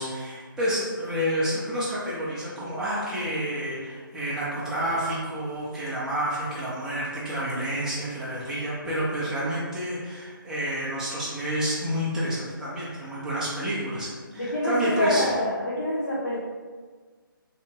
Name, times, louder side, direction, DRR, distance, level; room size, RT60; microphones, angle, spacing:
voice 1, 0.0-15.3, equal, 5° right, -9 dB, 0.6 m, -29 dB
voice 2, 14.4-16.4, left 1 dB, 55° left, -9 dB, 0.9 m, -26 dB
3.3 x 2.9 x 2.9 m, 1.5 s
figure-of-eight pair, 150°, 12 cm